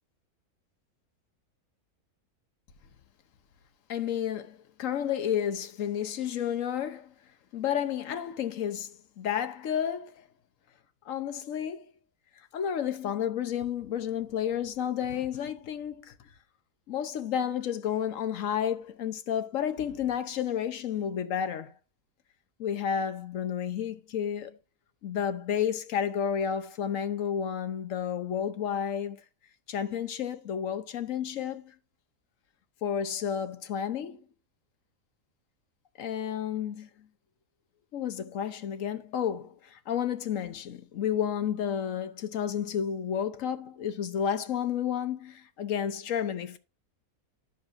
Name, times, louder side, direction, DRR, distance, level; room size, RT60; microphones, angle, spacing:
voice 1, 3.9-7.1 7.5-10.3 11.1-11.9 12.5-16.1 16.9-21.7 22.6-24.6 25.0-29.2 29.7-31.7 32.8-34.3 36.0-37.1 37.9-46.6, left 9 dB, 65° left, 1.1 m, -31 dB
10.5 x 6.8 x 2.5 m
omnidirectional pair, 1.6 m